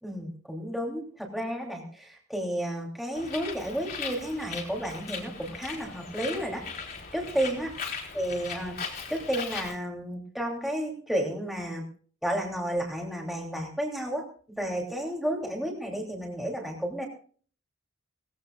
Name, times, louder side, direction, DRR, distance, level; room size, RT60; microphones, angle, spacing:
voice 1, 0.0-6.7 7.1-7.7 8.1-11.8 12.2-17.1, equal, ahead, -1 dB, 3.1 m, -32 dB
Bird, 3.1-9.7, left 5 dB, 45° left, 3.7 m, -38 dB
20.5 x 16.0 x 2.5 m, 0.43 s
head